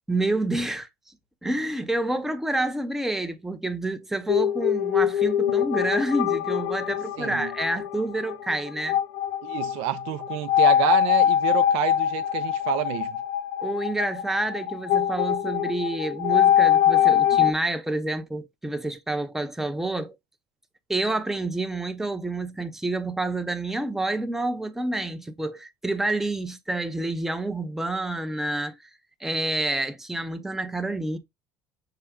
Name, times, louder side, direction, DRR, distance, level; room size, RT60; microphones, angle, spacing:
voice 1, 0.1-0.9 1.4-9.0 13.6-20.2 20.9-28.8 29.2-31.2, right 2 dB, 5° right, 0.6 m, -28 dB
sound 1, 4.3-17.5, left 10 dB, 85° left, 0.5 m, -23 dB
voice 2, 7.2-7.5 9.4-13.2, right 13 dB, 75° right, 0.4 m, -28 dB
5.7 x 2.1 x 3.5 m
supercardioid pair, 115°, 10 cm